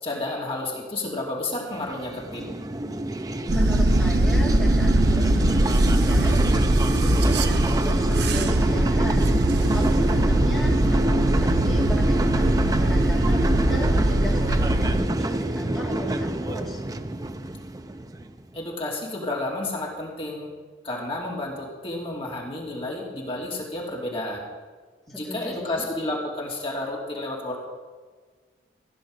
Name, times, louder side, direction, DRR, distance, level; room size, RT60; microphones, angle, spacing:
voice 1, 0.0-2.6 18.5-20.5 20.8-24.5 25.1-27.6, left 2 dB, 30° left, -3 dB, 2.8 m, -31 dB
sound 1, 1.7-18.4, right 1 dB, 20° right, 0.6 m, -26 dB
voice 2, 3.5-16.8 25.1-25.8, equal, 5° left, -6 dB, 2.4 m, -35 dB
sound 2, 3.5-15.0, right 1 dB, 60° right, 0.8 m, -22 dB
16.0 x 10.5 x 6.5 m, 1.5 s
head